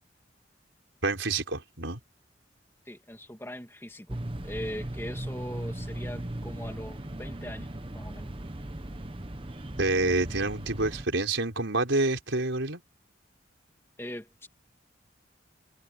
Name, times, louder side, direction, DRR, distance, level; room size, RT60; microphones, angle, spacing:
voice 1, 1.0-2.0 9.8-12.8, right 2 dB, 80° right, 4.5 m, -27 dB
voice 2, 2.9-4.2 4.4-8.3 14.0-14.5, equal, 15° left, 2.3 m, -40 dB
sound 1, 4.1-11.1, right 1 dB, 30° right, 1.1 m, -38 dB
head